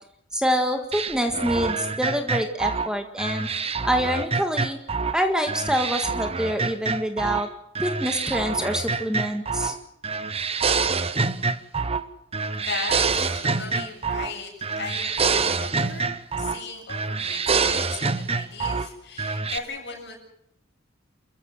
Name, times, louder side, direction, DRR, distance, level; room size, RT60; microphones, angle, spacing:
voice 1, 0.3-3.5 3.8-4.8 5.1-7.5 7.8-9.7, equal, 5° right, 4 dB, 1.7 m, -26 dB
sound 1, 0.9-5.2 5.5-7.5 7.8-9.8 10.0-12.1 12.3-14.4 14.6-16.6 16.9-18.9 19.2-19.6, right 4 dB, 30° right, 1.0 m, -26 dB
voice 2, 12.6-20.2, left 4 dB, 60° left, 1 dB, 7.8 m, -37 dB
28.0 x 15.0 x 7.7 m, 0.78 s
head